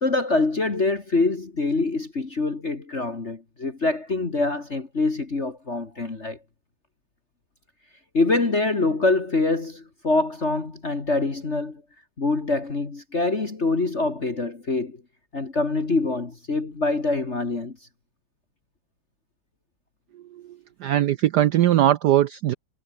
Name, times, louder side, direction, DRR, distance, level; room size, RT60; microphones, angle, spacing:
voice 1, 0.0-6.4 8.1-11.8 12.2-15.0 15.3-17.8, left 3 dB, 35° left, 2.5 m, -25 dB
voice 2, 20.8-22.5, right 12 dB, 65° right, 1.1 m, -20 dB
omnidirectional pair, 2.2 m